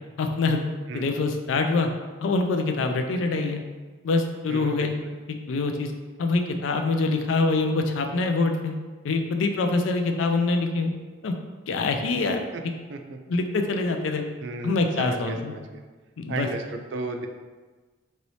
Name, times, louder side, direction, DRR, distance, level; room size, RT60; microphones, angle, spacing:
voice 1, 0.2-0.6 0.9-1.9 2.2-3.6 4.0-5.0 5.3-5.9 6.2-8.8 9.0-10.9 11.2-11.3 11.7-12.5 13.3-14.2 14.6-15.5 16.2-16.5, left 3 dB, 85° left, 5 dB, 0.4 m, -25 dB
voice 2, 4.5-5.1 12.5-12.6 12.9-13.2 14.4-15.8 16.3-17.3, right 3 dB, 70° right, 5 dB, 0.3 m, -34 dB
3.0 x 2.7 x 3.1 m, 1.3 s
head